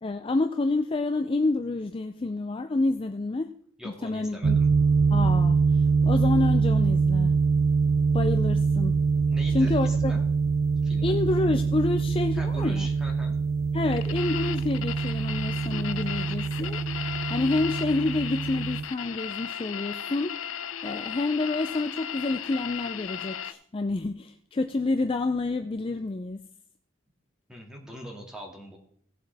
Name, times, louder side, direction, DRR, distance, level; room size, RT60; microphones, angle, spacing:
voice 1, 0.0-3.5 4.0-4.6 5.1-7.4 8.1-9.0 9.5-10.1 11.0-12.9 13.7-16.8 17.3-20.4 20.8-26.5, left 2 dB, 25° left, 8 dB, 0.4 m, -28 dB
voice 2, 3.8-4.7 9.3-10.2 10.8-11.2 12.3-13.4 27.5-28.8, equal, 5° right, -1 dB, 2.0 m, -42 dB
sound 1, 4.4-18.8, right 5 dB, 50° right, 0.6 m, -24 dB
sound 2, 13.9-23.5, left 9 dB, 80° left, 0.6 m, -36 dB
17.0 x 7.4 x 3.4 m, 0.62 s
head